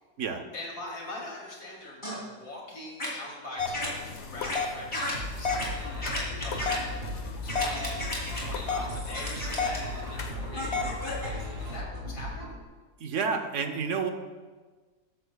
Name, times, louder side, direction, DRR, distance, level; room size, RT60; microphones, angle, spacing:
voice 1, 0.5-7.1 7.4-8.0 8.3-12.5, left 1 dB, 70° left, -3 dB, 3.1 m, -42 dB
sound 1, 2.0-2.2 3.0-3.1 3.7-3.9 4.4-4.6 4.9-5.1 5.5-5.7 6.0-6.8 7.5-8.4 9.1-9.8 10.5-11.3, left 1 dB, 15° left, 2.9 m, -33 dB
sound 2, 3.6-11.8, left 4 dB, 50° left, 1.0 m, -35 dB
sound 3, 5.1-12.6, left 1 dB, 35° right, 2.4 m, -37 dB
voice 2, 13.0-14.1, right 5 dB, 55° right, 6 dB, 1.0 m, -29 dB
13.5 x 12.5 x 2.3 m, 1.4 s
omnidirectional pair, 1.7 m